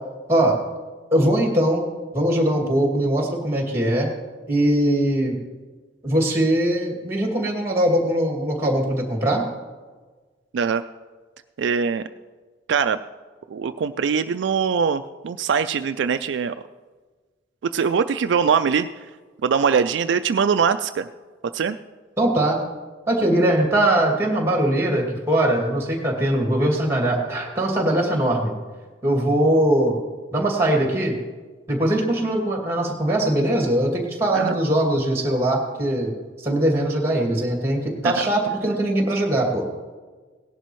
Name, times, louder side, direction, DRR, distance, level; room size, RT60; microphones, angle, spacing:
voice 1, 1.1-1.9 2.1-4.1 4.5-5.4 6.0-9.4 22.2-22.6 23.1-28.5 29.0-29.9 30.3-31.2 31.7-36.1 36.4-39.7, right 1 dB, 15° right, 0 dB, 2.3 m, -21 dB
voice 2, 11.6-12.0 12.7-13.0 13.5-16.5 17.7-18.9 19.4-21.1 21.5-21.8 34.3-34.5 38.0-38.3, right 6 dB, 65° right, 10 dB, 0.3 m, -22 dB
18.0 x 11.0 x 3.1 m, 1.3 s
head